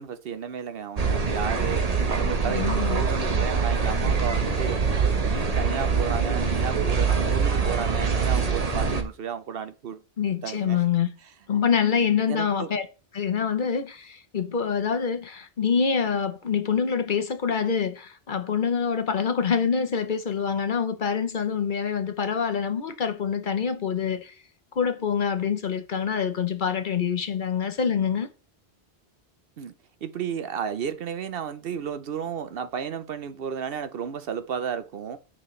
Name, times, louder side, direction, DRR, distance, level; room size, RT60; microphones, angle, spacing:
voice 1, 0.0-10.0 10.4-10.8 12.3-12.7 29.6-29.7 30.0-35.2, right 7 dB, 65° right, 0.8 m, -33 dB
sound 1, 1.0-9.0, right 5 dB, 35° right, 1.0 m, -24 dB
voice 2, 2.5-3.0 10.2-11.1 11.5-12.9 13.1-24.3 24.8-28.3, left 6 dB, 50° left, 0.9 m, -26 dB
9.2 x 5.6 x 3.1 m
omnidirectional pair, 1.1 m